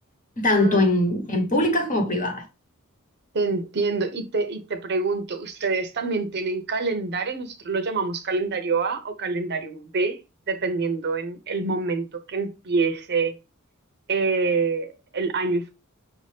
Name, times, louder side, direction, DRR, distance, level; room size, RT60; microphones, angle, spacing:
voice 1, 0.4-2.4, left 1 dB, 40° left, 1.2 m, -21 dB
voice 2, 3.3-10.2 10.5-13.3 14.1-15.7, right 4 dB, 50° right, 0.8 m, -26 dB
5.7 x 2.8 x 3.4 m
head